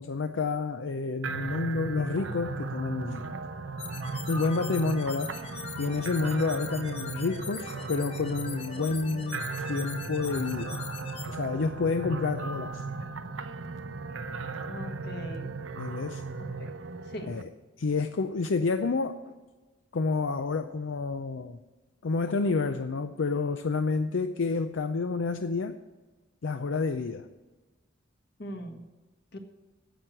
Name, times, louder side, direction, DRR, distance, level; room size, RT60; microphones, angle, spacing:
voice 1, 0.0-3.3 4.3-5.4 5.8-10.8 11.3-12.8 15.8-16.2 17.3-17.5 17.8-19.3 19.9-21.6 22.0-25.8 26.4-27.3, left 4 dB, 80° left, 9 dB, 0.5 m, -29 dB
sound 1, 1.2-17.4, right 3 dB, 90° right, 0.8 m, -37 dB
sound 2, 3.8-11.3, left 6 dB, 30° left, 1.0 m, -42 dB
voice 2, 14.7-15.6 16.6-16.7 17.1-17.3 28.4-28.8 29.3-29.4, left 1 dB, 55° left, 5 dB, 1.5 m, -40 dB
10.0 x 7.6 x 8.0 m, 1.2 s
head